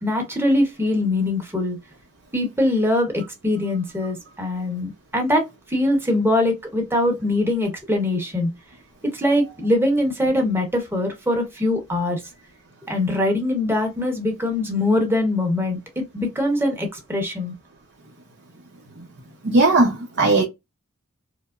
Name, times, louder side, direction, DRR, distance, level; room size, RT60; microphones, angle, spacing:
voice 1, 0.0-1.8 2.3-8.5 9.1-12.2 12.9-17.5, left 1 dB, 10° right, 1.0 m, -22 dB
voice 2, 19.4-20.4, right 2 dB, 55° right, 0.8 m, -18 dB
4.7 x 2.0 x 2.5 m
head